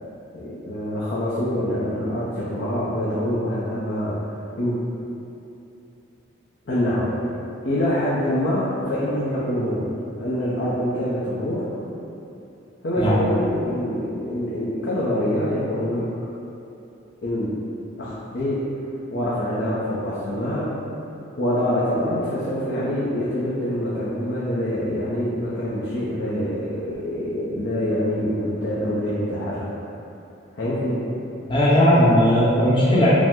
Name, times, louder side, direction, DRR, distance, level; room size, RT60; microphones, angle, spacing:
voice 1, 0.3-4.2 4.6-4.8 6.7-7.1 7.6-9.9 10.2-11.7 12.8-16.1 17.2-17.5 18.0-18.6 19.1-20.7 21.4-29.7 30.5-31.1, equal, 60° left, -9 dB, 0.6 m, -25 dB
voice 2, 31.5-33.1, equal, 25° left, -8 dB, 0.8 m, -17 dB
5.0 x 2.0 x 3.6 m, 2.8 s
head